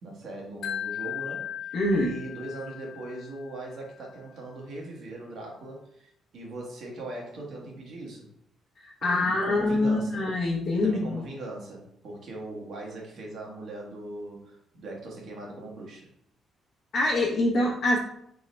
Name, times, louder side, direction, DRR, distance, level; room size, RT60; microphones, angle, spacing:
voice 1, 0.0-8.3 9.0-10.2 10.7-16.1, right 2 dB, 65° right, -1 dB, 1.1 m, -40 dB
Wind chime, 0.6-3.7, left 10 dB, 85° left, 0.4 m, -37 dB
voice 2, 1.7-2.1 8.8-11.2 16.9-18.0, left 2 dB, 65° left, -5 dB, 0.8 m, -25 dB
3.6 x 2.1 x 4.1 m, 0.75 s
cardioid pair, 90°, 0 cm